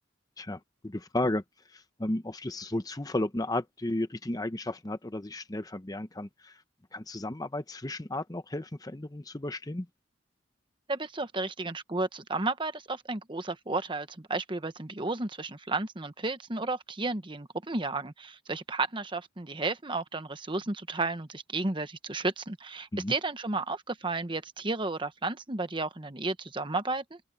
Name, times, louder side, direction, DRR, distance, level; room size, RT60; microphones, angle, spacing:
voice 1, 0.4-1.4 1.7-6.5 6.9-9.9 22.9-23.1, left 1 dB, 20° left, 0.8 m, -33 dB
voice 2, 10.9-27.2, right 3 dB, 25° right, 1.1 m, -33 dB
open air
head